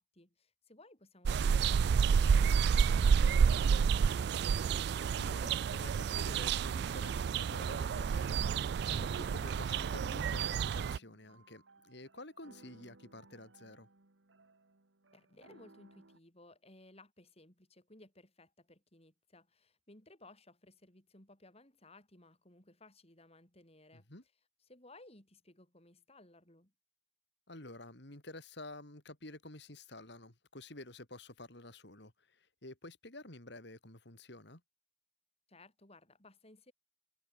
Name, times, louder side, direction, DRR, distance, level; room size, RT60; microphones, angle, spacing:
voice 1, 0.0-4.3 15.1-24.1 24.7-26.7 35.5-36.7, left 2 dB, 30° left, 5.2 m, -60 dB
sound 1, 1.2-11.0, right 6 dB, 60° right, 0.3 m, -30 dB
sound 2, 1.8-16.2, right 2 dB, 75° right, 1.7 m, -63 dB
voice 2, 5.1-13.9 23.9-24.2 27.5-34.6, left 2 dB, 60° left, 3.9 m, -50 dB
head